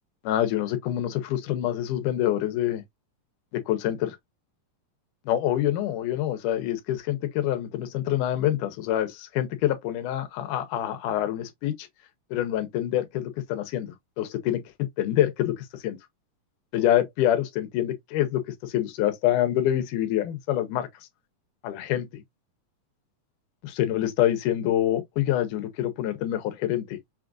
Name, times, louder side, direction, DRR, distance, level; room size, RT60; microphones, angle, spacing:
voice 1, 0.2-2.8 3.5-4.2 5.3-11.9 12.3-16.0 16.7-20.9 21.6-22.2 23.6-27.0, left 12 dB, 80° left, 2.1 m, -26 dB
5.8 x 2.4 x 2.4 m
omnidirectional pair, 3.9 m